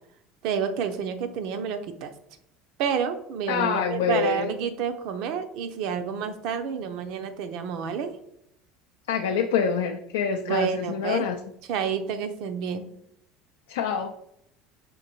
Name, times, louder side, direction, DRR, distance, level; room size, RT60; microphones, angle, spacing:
voice 1, 0.4-2.1 2.8-8.2 10.4-11.2 11.7-12.9, right 7 dB, 65° right, 9 dB, 0.5 m, -29 dB
voice 2, 3.5-4.5 9.1-11.4 13.7-14.1, left 7 dB, 85° left, 4 dB, 0.3 m, -26 dB
5.1 x 2.6 x 2.9 m, 0.73 s
supercardioid pair, 90°, 0 cm